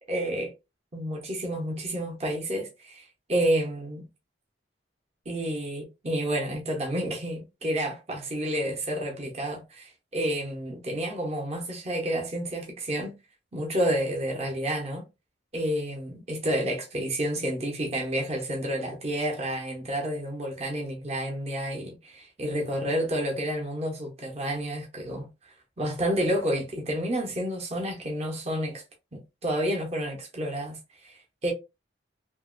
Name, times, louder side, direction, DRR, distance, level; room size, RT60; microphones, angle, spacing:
voice 1, 0.1-0.5 0.9-4.1 5.3-13.1 13.5-15.1 15.5-25.3 25.8-28.8 29.1-31.5, right 1 dB, 35° right, 0.8 m, -30 dB
2.8 x 2.6 x 2.5 m
head